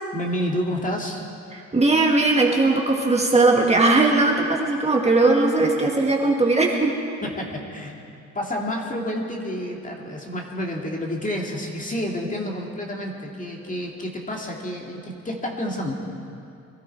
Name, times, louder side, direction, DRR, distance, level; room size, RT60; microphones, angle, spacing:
voice 1, 0.1-1.2 7.2-8.0 8.3-15.9, equal, 25° left, 0 dB, 2.3 m, -29 dB
voice 2, 1.5-7.0, right 2 dB, 20° right, 0 dB, 1.9 m, -19 dB
23.0 x 12.5 x 4.7 m, 2.5 s
cardioid pair, 90°, 30 cm